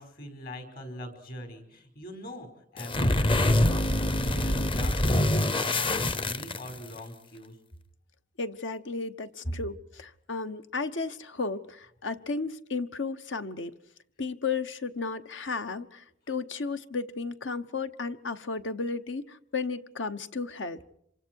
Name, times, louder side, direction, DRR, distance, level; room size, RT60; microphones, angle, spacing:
voice 1, 0.0-7.6, left 1 dB, 55° left, 5.2 m, -42 dB
sound 1, 2.8-7.0, left 1 dB, 30° left, 0.8 m, -25 dB
voice 2, 8.4-13.7 14.2-20.8, left 4 dB, 75° left, 1.1 m, -34 dB
27.0 x 24.5 x 4.7 m
head